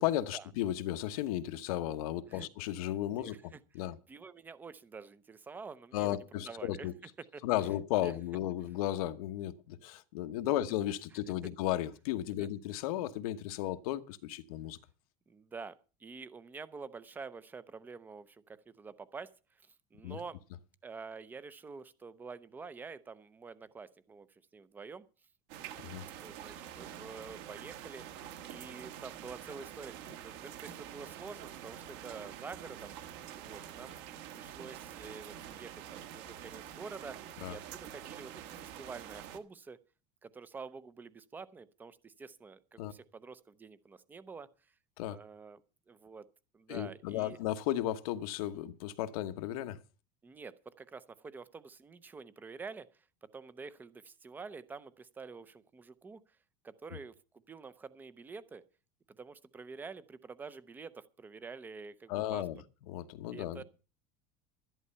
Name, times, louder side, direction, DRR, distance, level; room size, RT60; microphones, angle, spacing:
voice 1, 0.0-3.3 3.7-4.0 5.9-6.9 7.4-14.8 20.0-20.2 25.8-26.0 37.4-37.6 42.8-42.9 45.0-45.2 46.7-49.8 62.1-62.6 62.9-63.6, left 13 dB, 85° left, 1.1 m, -34 dB
voice 2, 3.2-6.9 7.3-7.7 8.0-8.1 10.3-10.6 12.4-12.5 15.3-15.7 16.0-20.4 20.8-25.1 26.2-33.0 33.4-34.0 34.3-39.8 40.2-44.7 45.1-46.3 46.5-47.4 50.2-56.2 56.6-57.1 57.5-58.6 59.2-62.4 63.3-63.6, right 4 dB, 10° right, 0.5 m, -48 dB
sound 1, 25.5-39.4, right 10 dB, 55° right, 1.4 m, -47 dB
12.0 x 11.0 x 5.5 m
cardioid pair, 175°, 18 cm